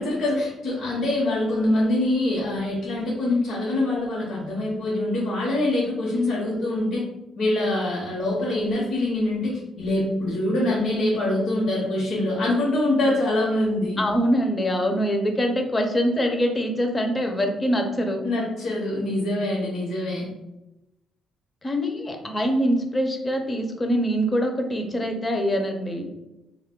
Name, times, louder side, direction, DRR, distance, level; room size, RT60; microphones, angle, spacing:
voice 1, 0.0-7.0 7.4-14.0 18.2-20.3, left 1 dB, 80° left, -5 dB, 0.9 m, -24 dB
voice 2, 14.0-18.3 21.6-26.1, equal, 25° left, 3 dB, 0.5 m, -24 dB
2.2 x 2.1 x 3.6 m, 0.93 s
cardioid pair, 90°, 0 cm